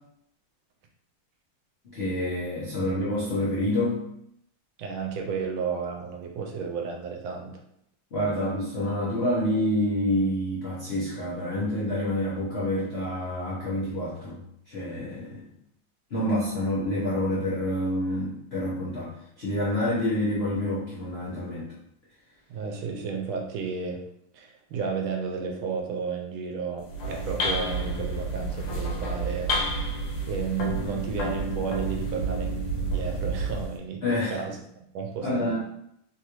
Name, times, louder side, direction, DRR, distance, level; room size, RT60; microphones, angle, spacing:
voice 1, 1.8-4.0 8.1-14.4 14.7-15.5 16.1-21.7 34.0-34.4 35.2-35.6, left 1 dB, 70° left, -8 dB, 0.5 m, -28 dB
voice 2, 4.8-7.6 22.5-24.0 24.3-29.9 30.3-34.0 34.3-35.6, right 6 dB, 75° right, 2 dB, 1.3 m, -33 dB
sound 1, 26.8-33.8, right 2 dB, 90° left, 1.5 m, -30 dB
3.6 x 2.5 x 2.9 m, 0.74 s
omnidirectional pair, 2.3 m